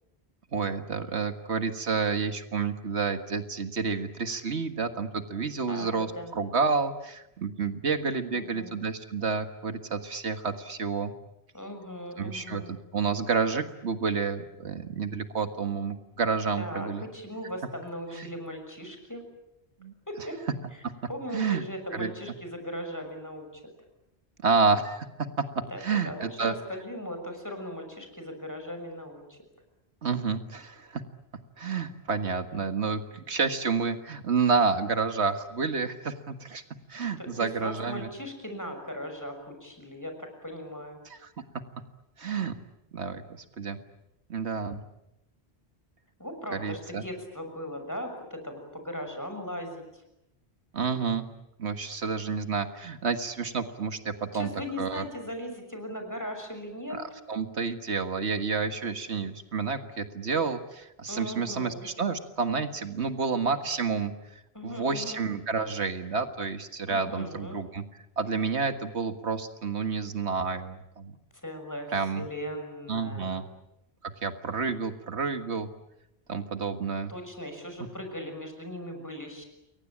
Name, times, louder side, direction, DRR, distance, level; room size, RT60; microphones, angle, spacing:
voice 1, 0.5-6.1 6.3-11.1 12.2-17.0 18.2-18.3 19.8-19.9 20.8-20.9 21.3-21.6 21.9-22.1 24.4-25.1 25.4-26.5 30.0-31.0 31.6-36.6 36.9-38.1 41.1-41.6 42.2-42.5 42.9-43.2 43.6-43.8 44.3-44.8 46.5-47.0 50.7-51.3 51.6-54.5 54.8-55.0 56.9-64.1 64.6-67.8 68.2-71.1 71.9-72.2 72.9-73.4 74.0-75.7 76.3-77.1, right 5 dB, 80° right, 8 dB, 1.9 m, -29 dB
voice 2, 5.7-6.3 8.3-8.8 11.5-12.7 16.6-19.2 20.1-20.4 21.1-23.6 25.7-25.8 26.0-29.4 37.2-41.0 46.2-50.0 54.3-57.0 61.1-61.9 64.5-65.2 66.9-67.6 71.3-73.4 77.1-79.4, equal, 15° left, 5 dB, 6.4 m, -38 dB
29.0 x 23.0 x 8.8 m, 0.87 s
omnidirectional pair, 1.1 m